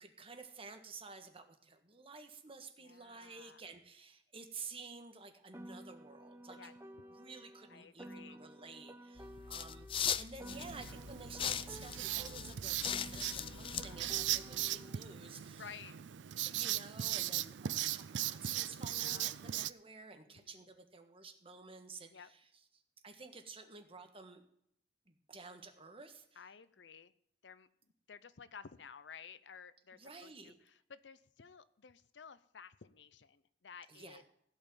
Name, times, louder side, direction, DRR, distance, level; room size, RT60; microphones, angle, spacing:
voice 1, 0.0-6.7 7.1-9.9 10.2-15.6 16.4-22.4 23.0-24.4 25.1-26.4 30.0-30.6 33.9-34.2, right 4 dB, 30° right, 6 dB, 1.5 m, -52 dB
voice 2, 2.8-3.6 6.5-6.7 7.7-8.4 9.2-9.5 13.3-13.6 13.9-14.0 15.4-16.0 18.8-19.3 20.3-20.6 22.1-22.3 26.4-27.1 27.4-27.7 28.1-34.2, left 6 dB, 80° left, 15 dB, 0.7 m, -54 dB
Piano, 5.5-10.0 10.4-15.0, right 1 dB, 15° right, 0.7 m, -52 dB
sound 1, 9.2-14.7, left 8 dB, 30° left, 0.4 m, -40 dB
Writing, 10.5-19.7, right 13 dB, 85° right, 0.5 m, -39 dB
16.5 x 5.5 x 9.0 m, 0.71 s
head